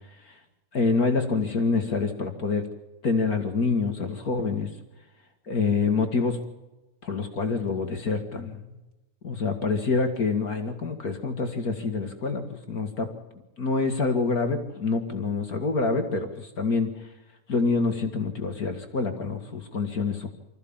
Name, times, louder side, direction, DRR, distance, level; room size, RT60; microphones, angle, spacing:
voice 1, 0.7-2.7 3.0-4.7 5.5-6.4 7.0-8.8 9.2-13.1 13.6-16.9 17.5-20.3, left 4 dB, 35° left, 6 dB, 1.6 m, -26 dB
25.5 x 14.5 x 7.1 m, 1.1 s
omnidirectional pair, 3.8 m